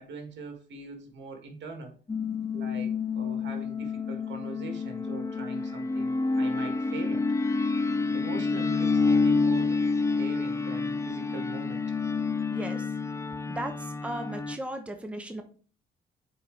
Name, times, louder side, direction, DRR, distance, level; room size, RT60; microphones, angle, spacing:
voice 1, 0.0-2.0 2.5-7.3 8.1-11.8, right 3 dB, 65° right, 4 dB, 1.8 m, -42 dB
sound 1, 2.1-14.6, left 4 dB, 15° left, 0.5 m, -28 dB
voice 2, 12.5-12.9 13.5-15.4, right 1 dB, 5° right, 5 dB, 0.9 m, -36 dB
7.7 x 4.3 x 3.2 m, 0.40 s
cardioid pair, 90°, 20 cm